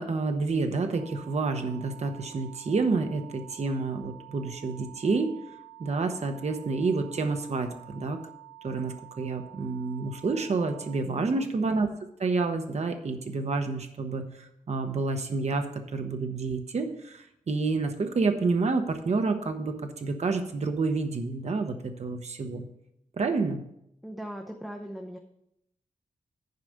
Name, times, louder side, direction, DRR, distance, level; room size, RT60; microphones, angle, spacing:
voice 1, 0.0-5.3 5.8-8.2 8.6-11.9 12.2-22.6 23.2-23.6, right 3 dB, 55° right, 6 dB, 1.0 m, -29 dB
sound 1, 0.9-11.0, right 18 dB, 75° right, 2.3 m, -49 dB
voice 2, 11.0-11.5 24.0-25.2, equal, ahead, 3 dB, 0.8 m, -39 dB
10.5 x 4.9 x 6.6 m, 0.78 s
wide cardioid pair, 125°, 14 cm